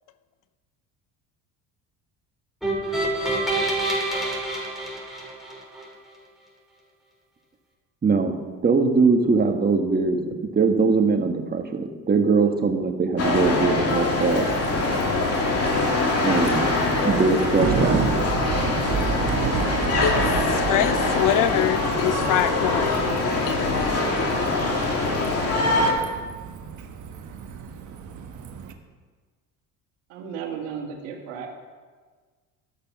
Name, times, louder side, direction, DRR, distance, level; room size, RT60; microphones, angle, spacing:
sound 1, 2.6-5.8, right 1 dB, ahead, 3.7 m, -27 dB
voice 1, 8.0-8.4 8.6-14.4 16.2-16.7 17.0-18.0, right 4 dB, 25° right, 4 dB, 1.5 m, -21 dB
sound 2, 13.2-25.9, left 2 dB, 40° left, 2.4 m, -23 dB
Bicycle, 13.9-28.7, right 6 dB, 50° right, 1.2 m, -32 dB
voice 2, 20.5-23.0 23.5-23.9, left 11 dB, 60° left, 14 dB, 0.7 m, -24 dB
voice 3, 30.1-31.5, right 7 dB, 85° right, 2 dB, 1.8 m, -34 dB
13.0 x 6.6 x 6.0 m, 1.4 s
supercardioid pair, 80°, 37 cm